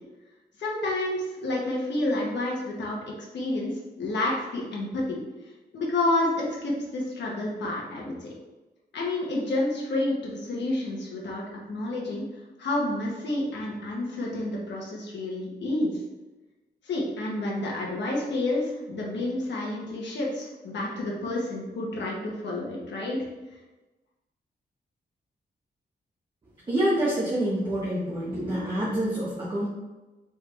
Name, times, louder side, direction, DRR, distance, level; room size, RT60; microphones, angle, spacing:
voice 1, 0.6-3.7 4.0-5.2 5.7-8.3 8.9-12.2 12.6-15.9 16.8-23.2, left 2 dB, 85° left, -3 dB, 1.1 m, -29 dB
voice 2, 26.7-29.7, right 1 dB, 25° right, -7 dB, 1.0 m, -27 dB
4.5 x 3.5 x 3.2 m, 1.1 s
wide cardioid pair, 140°, 18 cm